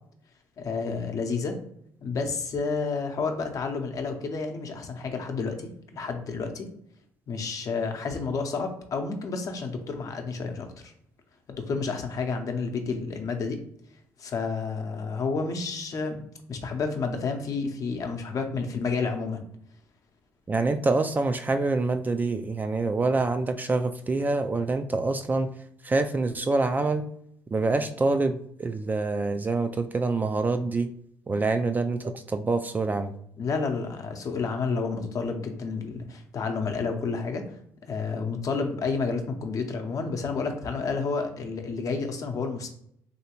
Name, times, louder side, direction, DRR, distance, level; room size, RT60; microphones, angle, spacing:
voice 1, 0.6-1.6 2.0-6.7 7.3-10.9 11.5-13.6 14.2-16.2 16.5-19.4 33.4-37.4 37.9-42.7, left 4 dB, 55° left, 5 dB, 0.7 m, -30 dB
voice 2, 20.5-25.5 25.8-27.1 27.5-30.9 31.3-33.1, right 3 dB, 25° right, 8 dB, 0.3 m, -26 dB
3.1 x 2.7 x 2.9 m, 0.69 s
supercardioid pair, 70°, 7 cm